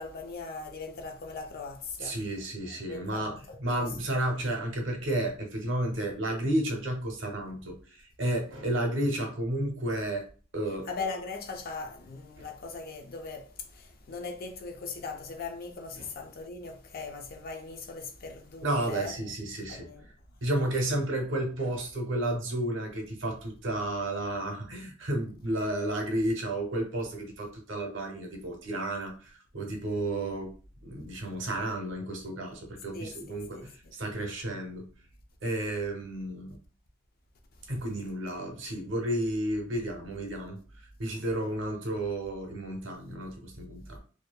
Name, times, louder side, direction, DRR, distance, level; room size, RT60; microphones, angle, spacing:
voice 1, 0.0-2.2 2.9-3.9 10.9-19.3 19.7-20.1 32.9-33.9, left 4 dB, 50° left, 0.4 m, -40 dB
voice 2, 2.0-3.3 3.6-10.2 10.5-10.9 12.4-12.5 16.0-16.1 18.6-19.9 20.4-30.5 30.8-34.9 35.4-36.6 37.7-40.6 41.0-44.0, right 1 dB, 70° right, 0.7 m, -32 dB
2.6 x 2.4 x 2.2 m
head